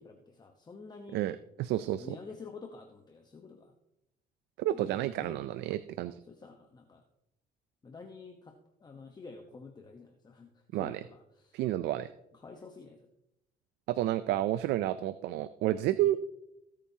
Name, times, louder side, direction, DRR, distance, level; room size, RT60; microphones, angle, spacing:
voice 1, 0.0-1.2 2.0-3.7 4.7-5.6 6.3-7.0 7.8-8.5 8.8-11.6 12.3-13.1 16.0-16.1, left 4 dB, 25° left, 4 dB, 1.0 m, -49 dB
voice 2, 1.1-2.2 4.6-6.2 10.7-11.0 11.5-12.1 13.9-16.2, right 14 dB, 80° right, 14 dB, 0.4 m, -30 dB
19.0 x 8.6 x 2.8 m, 0.86 s
cardioid pair, 110°, 17 cm